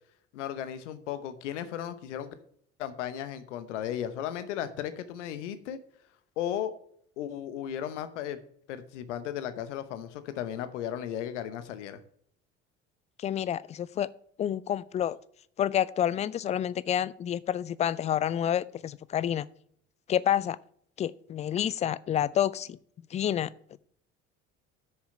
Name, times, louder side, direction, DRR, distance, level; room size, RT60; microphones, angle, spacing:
voice 1, 0.3-2.3 2.8-5.8 6.4-6.7 7.2-8.4 8.7-12.0, left 10 dB, 65° left, 1.0 m, -35 dB
voice 2, 13.2-14.1 14.4-15.2 15.6-19.4 20.1-20.6 21.0-22.8 23.1-23.5, left 10 dB, 20° left, 0.3 m, -28 dB
7.7 x 6.7 x 6.7 m
figure-of-eight pair, 55°, 38 cm